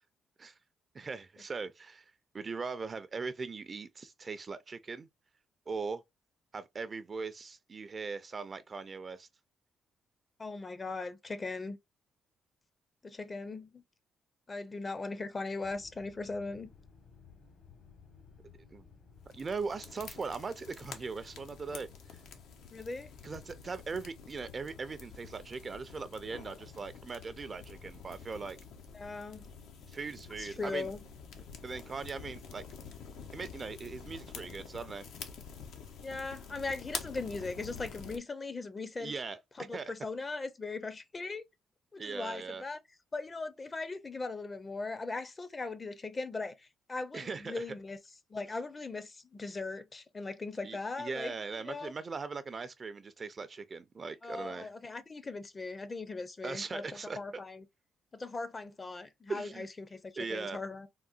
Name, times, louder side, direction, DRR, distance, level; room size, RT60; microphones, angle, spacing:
voice 1, 0.9-2.0 2.3-5.1 5.7-6.0 6.5-9.3 18.7-18.8 19.3-21.9 23.2-28.6 29.9-30.9 31.6-32.6 33.3-35.1 39.0-39.4 39.7-39.9 42.0-42.6 47.1-47.6 50.6-54.7 56.4-57.4 59.3-59.7 60.2-60.6, right 4 dB, 35° right, 0.4 m, -40 dB
voice 2, 10.4-11.8 13.0-13.8 14.5-16.7 22.7-23.1 28.9-29.5 30.4-31.0 36.0-39.1 39.6-41.4 41.9-42.8 43.1-48.0 48.3-51.9 54.2-57.6 58.1-60.9, left 3 dB, 30° left, 0.5 m, -39 dB
sound 1, 15.6-35.0, left 5 dB, 65° left, 1.3 m, -58 dB
sound 2, 19.3-38.2, left 6 dB, 85° left, 0.6 m, -48 dB
3.8 x 2.1 x 2.4 m
cardioid pair, 90°, 0 cm